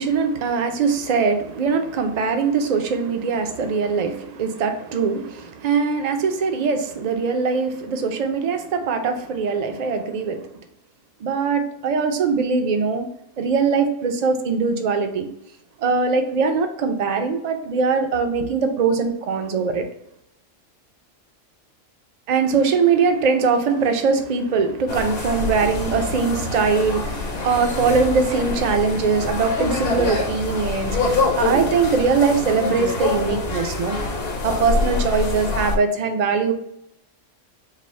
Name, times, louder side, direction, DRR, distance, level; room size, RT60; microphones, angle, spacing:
voice 1, 0.0-10.5 11.2-13.1 13.4-15.3 15.8-19.9 22.3-34.0 34.4-36.5, right 5 dB, 60° right, 6 dB, 0.4 m, -21 dB
sound 1, 24.9-35.8, left 3 dB, 55° left, 0.9 m, -25 dB
4.9 x 2.1 x 4.1 m, 0.79 s
omnidirectional pair, 1.3 m